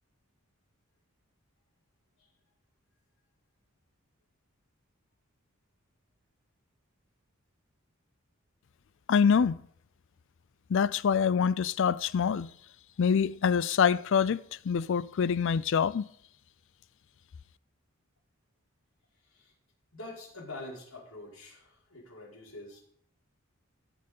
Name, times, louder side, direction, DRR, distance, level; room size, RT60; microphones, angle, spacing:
voice 1, 9.1-9.6 10.7-12.5 13.0-16.1, left 6 dB, 60° left, 0.4 m, -25 dB
voice 2, 19.2-19.5 19.9-22.8, left 2 dB, 85° left, 5.3 m, -45 dB
17.0 x 6.7 x 5.4 m
head